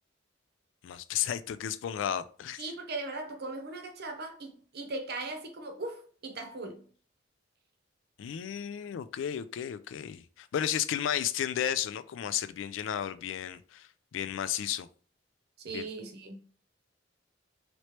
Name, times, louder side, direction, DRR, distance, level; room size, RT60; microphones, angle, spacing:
voice 1, 0.8-2.7 8.2-14.9 15.7-15.9, left 9 dB, 75° left, 0.3 m, -33 dB
voice 2, 2.6-6.8 15.6-16.4, right 2 dB, 55° right, 0.8 m, -39 dB
3.1 x 3.0 x 2.8 m
head